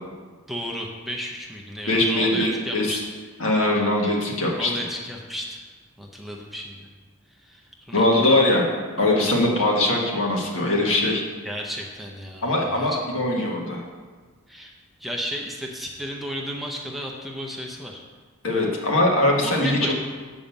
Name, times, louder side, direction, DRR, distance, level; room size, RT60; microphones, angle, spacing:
voice 1, 0.5-3.0 4.5-5.6 6.0-6.9 7.4-8.4 11.4-13.0 14.5-14.7 15.0-18.0 19.4-19.9, equal, ahead, -1 dB, 0.7 m, -33 dB
voice 2, 1.9-3.0 3.4-4.7 7.9-8.6 9.0-11.2 12.4-13.8 18.4-19.9, left 1 dB, 65° left, -1 dB, 1.6 m, -21 dB
7.1 x 5.2 x 7.1 m, 1.5 s
head